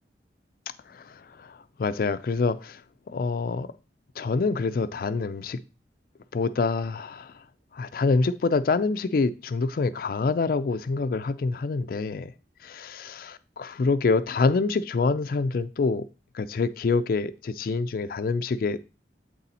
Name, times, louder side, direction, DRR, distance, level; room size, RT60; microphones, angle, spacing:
voice 1, 0.9-2.8 3.1-3.7 4.2-5.6 6.3-7.3 7.7-12.3 12.6-16.1 16.3-18.8, left 4 dB, 55° left, 0.4 m, -26 dB
8.0 x 4.1 x 4.1 m
head